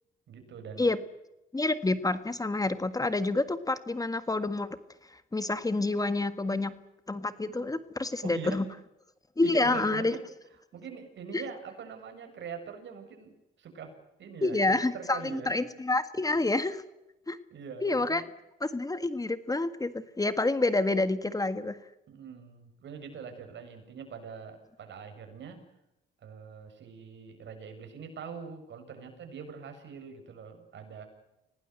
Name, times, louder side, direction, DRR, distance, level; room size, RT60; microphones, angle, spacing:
voice 1, 0.3-0.9 8.2-8.7 9.4-10.3 10.7-13.9 14.2-14.6 14.9-15.5 17.5-18.3 22.1-25.6 26.2-31.1, right 6 dB, 65° right, 6 dB, 7.2 m, -43 dB
voice 2, 1.5-4.7 5.1-6.7 7.1-8.7 9.4-10.2 11.3-11.4 14.4-16.8 17.3-17.4 17.8-18.2 18.6-21.8, left 2 dB, 20° left, 11 dB, 1.7 m, -28 dB
26.5 x 19.0 x 8.1 m, 0.90 s
cardioid pair, 90°, 20 cm